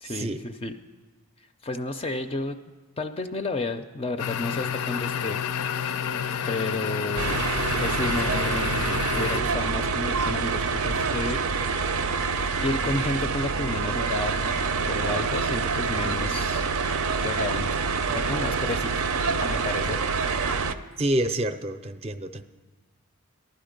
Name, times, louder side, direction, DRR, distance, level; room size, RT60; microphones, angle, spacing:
voice 1, 0.0-0.7 1.6-2.6 3.0-5.4 6.5-7.4 7.8-11.4 11.8-11.9 12.6-16.6 17.2-17.8 18.1-19.1 19.4-20.1, left 2 dB, 25° left, 8 dB, 0.4 m, -31 dB
sound 1, 4.2-9.4, left 8 dB, 85° left, 0.5 m, -29 dB
sound 2, 7.2-20.7, right 4 dB, 75° right, 0.6 m, -26 dB
voice 2, 21.0-22.4, right 1 dB, 25° right, 10 dB, 0.5 m, -27 dB
15.0 x 11.5 x 5.1 m, 1.2 s
head